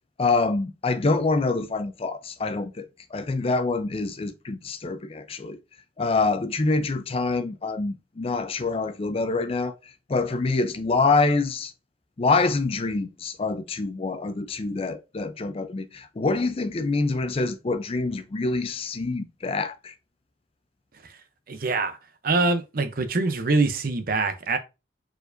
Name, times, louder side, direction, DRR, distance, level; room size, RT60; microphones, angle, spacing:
voice 1, 0.2-2.8 3.1-5.6 6.0-9.7 10.1-11.7 12.2-19.9, left 3 dB, 35° left, 0.4 m, -26 dB
voice 2, 21.5-22.0 22.2-24.6, right 3 dB, 55° right, 0.7 m, -24 dB
4.6 x 4.4 x 2.6 m
head